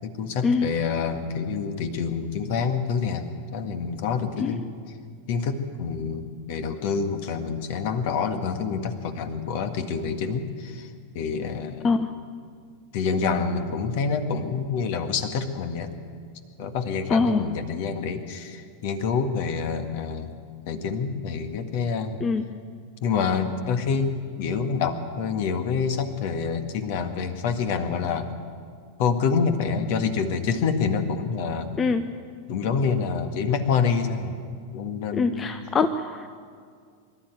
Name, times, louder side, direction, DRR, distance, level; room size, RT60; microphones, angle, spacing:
voice 1, 0.0-3.2 3.5-4.7 5.3-10.9 11.1-12.0 12.9-15.9 16.6-20.3 20.6-22.2 23.0-28.3 29.0-31.7 32.5-34.3 34.7-35.5, left 5 dB, 50° left, 8 dB, 1.8 m, -27 dB
voice 2, 17.1-17.4 22.2-22.4 31.8-32.0 35.1-36.3, left 4 dB, 20° left, 9 dB, 0.8 m, -23 dB
24.0 x 12.5 x 9.4 m, 2.1 s
figure-of-eight pair, 90°, 0 cm